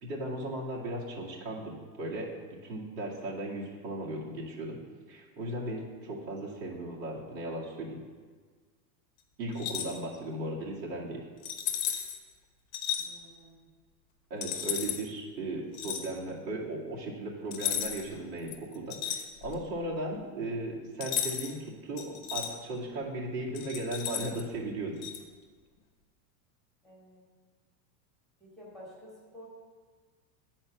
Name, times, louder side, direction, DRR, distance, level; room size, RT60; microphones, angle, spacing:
voice 1, 0.0-2.3 2.6-4.8 5.1-8.0 9.4-11.3 14.3-21.6 21.8-22.1 22.3-24.9, right 1 dB, 80° right, -4 dB, 2.3 m, -36 dB
sound 1, 9.5-10.0 11.4-12.2 12.7-13.1 14.4-15.0 15.7-16.1 17.5-18.1 18.5-19.7 21.0-21.5 22.0-22.5 23.5-24.4 25.0-25.2, left 9 dB, 35° left, 0.8 m, -34 dB
voice 2, 13.0-13.7 26.8-27.2 28.4-29.5, equal, ahead, -5 dB, 1.4 m, -51 dB
8.7 x 4.4 x 5.8 m, 1.5 s
supercardioid pair, 155°, 49 cm